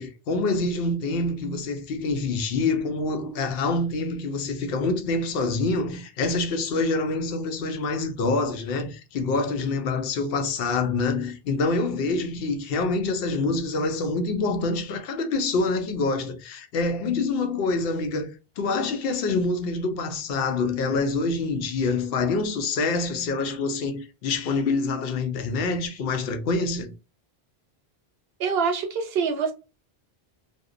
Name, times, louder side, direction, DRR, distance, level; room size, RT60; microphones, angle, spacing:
voice 1, 0.0-18.3 18.6-26.9, left 3 dB, 70° left, 0.7 m, -26 dB
voice 2, 28.4-29.5, right 5 dB, 75° right, 0.8 m, -25 dB
2.6 x 2.0 x 2.4 m
omnidirectional pair, 1.1 m